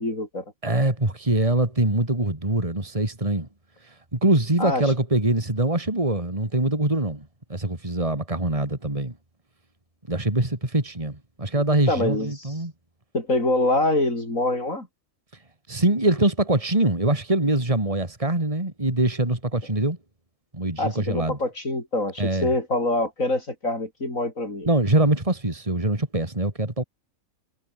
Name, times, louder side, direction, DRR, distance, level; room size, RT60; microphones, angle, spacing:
voice 1, 0.0-0.4 4.6-4.8 11.9-12.5 13.1-14.9 20.8-24.7, left 2 dB, 80° left, 7.2 m, -25 dB
voice 2, 0.6-3.5 3.8-9.1 10.1-12.7 15.7-20.0 20.5-21.4 22.2-22.5 24.7-26.8, right 1 dB, 25° right, 3.6 m, -23 dB
omnidirectional pair, 1.4 m